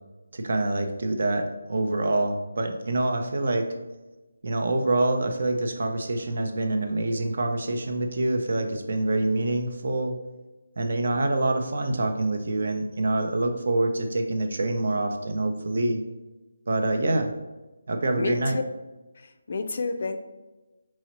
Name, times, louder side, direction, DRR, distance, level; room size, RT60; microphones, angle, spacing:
voice 1, 0.3-3.7 4.4-10.2 10.8-16.0 16.7-17.3 17.9-18.6, right 2 dB, 55° right, 5 dB, 0.6 m, -26 dB
voice 2, 18.2-18.6 19.5-20.2, left 4 dB, 50° left, 8 dB, 0.4 m, -29 dB
4.8 x 3.0 x 3.0 m, 1.1 s
figure-of-eight pair, 160°, 0 cm